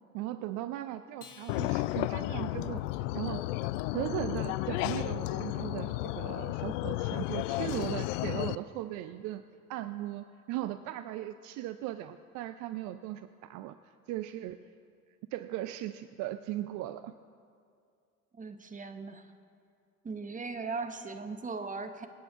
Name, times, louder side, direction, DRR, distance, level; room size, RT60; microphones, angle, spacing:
voice 1, 0.1-2.8 3.1-3.4 3.9-9.4 9.7-13.8 14.1-14.6 15.3-17.1, right 14 dB, 40° right, 12 dB, 0.5 m, -38 dB
Acoustic guitar, 1.2-3.8, left 8 dB, 80° left, 1.2 m, -57 dB
sound 1, 1.5-8.6, left 17 dB, 60° left, 0.5 m, -33 dB
voice 2, 18.4-19.3 20.0-22.1, right 4 dB, 15° right, 8 dB, 1.1 m, -38 dB
27.0 x 9.0 x 3.6 m, 2.3 s
figure-of-eight pair, 70°, 45 cm